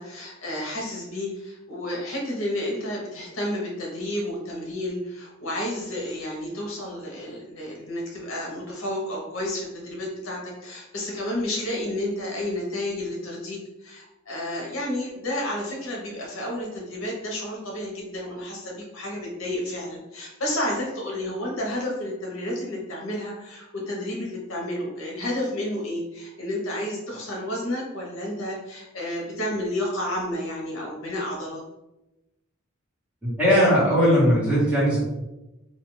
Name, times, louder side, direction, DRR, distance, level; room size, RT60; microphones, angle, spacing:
voice 1, 0.0-31.6, left 1 dB, 65° left, -2 dB, 0.8 m, -31 dB
voice 2, 33.2-35.0, equal, 5° right, -9 dB, 1.2 m, -19 dB
2.6 x 2.4 x 3.1 m, 0.97 s
head